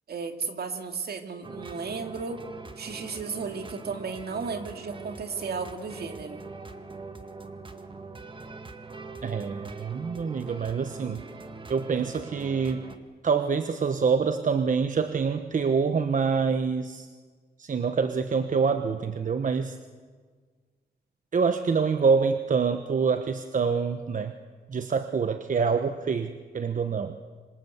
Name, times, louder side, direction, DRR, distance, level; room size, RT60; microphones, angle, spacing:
voice 1, 0.1-2.4 2.8-6.4, right 5 dB, 65° right, 7 dB, 2.5 m, -34 dB
sound 1, 1.4-13.0, right 3 dB, 30° right, 1.7 m, -42 dB
voice 2, 9.2-11.2 11.7-12.9 13.2-17.1 17.6-19.8 21.3-24.4 24.7-27.2, right 5 dB, 50° right, 9 dB, 1.1 m, -26 dB
26.5 x 25.5 x 8.2 m, 1.5 s
wide cardioid pair, 160°, 17 cm